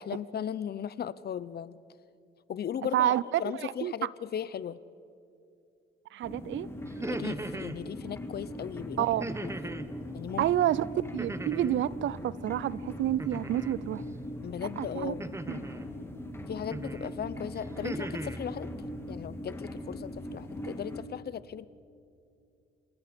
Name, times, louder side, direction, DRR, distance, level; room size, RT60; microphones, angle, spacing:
voice 1, 0.0-1.8 2.5-3.1 3.4-4.8 7.0-9.1 9.4-9.5 10.1-10.5 14.4-15.3 16.5-18.7 19.1-21.7, left 9 dB, 55° left, 17 dB, 0.8 m, -37 dB
voice 2, 2.9-3.9 6.1-6.7 9.0-9.2 10.4-10.9 11.1-14.0 14.8-15.1 15.5-15.6, right 12 dB, 75° right, 20 dB, 0.7 m, -29 dB
sound 1, 6.2-21.0, left 1 dB, 10° left, 2.7 m, -40 dB
sound 2, 6.9-7.8 9.2-9.9 11.2-11.9 13.2-13.8 15.2-15.9 16.7-17.1 17.6-18.4, right 2 dB, 15° right, 1.2 m, -38 dB
28.5 x 27.0 x 5.3 m, 2.5 s
cardioid pair, 90°, 20 cm